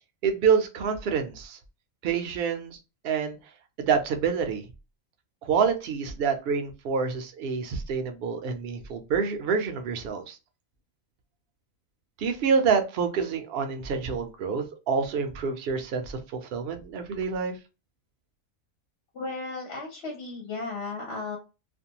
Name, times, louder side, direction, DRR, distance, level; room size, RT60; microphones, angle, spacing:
voice 1, 0.2-1.6 2.0-2.8 3.0-3.4 3.8-4.7 5.4-10.4 12.2-17.6, right 6 dB, 60° right, 6 dB, 0.7 m, -27 dB
voice 2, 19.1-21.4, left 3 dB, 55° left, 0 dB, 1.0 m, -35 dB
2.5 x 2.2 x 2.8 m, 0.29 s
omnidirectional pair, 1.4 m